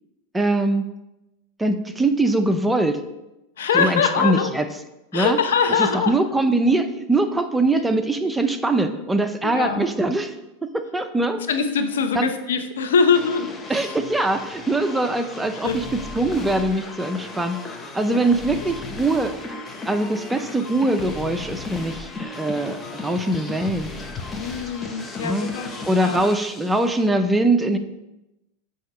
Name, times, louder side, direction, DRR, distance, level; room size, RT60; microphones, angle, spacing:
voice 1, 0.3-0.9 1.6-3.0 3.7-4.6 5.1-5.4 5.8-10.3 10.6-11.4 12.1-12.3 13.7-15.8 16.1-17.6 17.9-19.3 19.9-23.9 25.2-25.5 25.9-27.8, right 2 dB, 10° right, 8 dB, 0.5 m, -22 dB
voice 2, 3.6-4.5 5.1-6.2 9.4-9.8 11.5-14.0 15.5-15.8 18.1-18.3 24.4-25.7 26.0-26.3, left 6 dB, 85° left, 8 dB, 0.6 m, -23 dB
sound 1, 13.1-27.1, left 3 dB, 20° left, 0.8 m, -36 dB
7.9 x 2.8 x 4.8 m, 0.95 s
hypercardioid pair, 110°, 0 cm